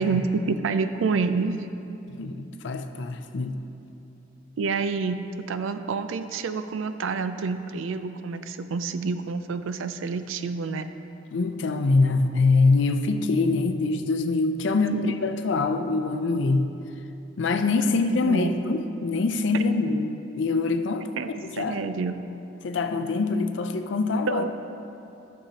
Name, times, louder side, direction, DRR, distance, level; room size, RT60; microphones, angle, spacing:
voice 1, 0.0-1.7 4.6-10.9 14.9-15.1 18.2-18.6 21.2-21.3 21.6-22.2 24.3-24.5, right 4 dB, 85° right, 10 dB, 0.4 m, -28 dB
voice 2, 2.1-3.6 11.3-16.7 17.4-21.1 21.4-21.8 22.6-24.5, left 3 dB, 70° left, 8 dB, 0.5 m, -24 dB
13.0 x 6.4 x 2.8 m, 2.8 s
head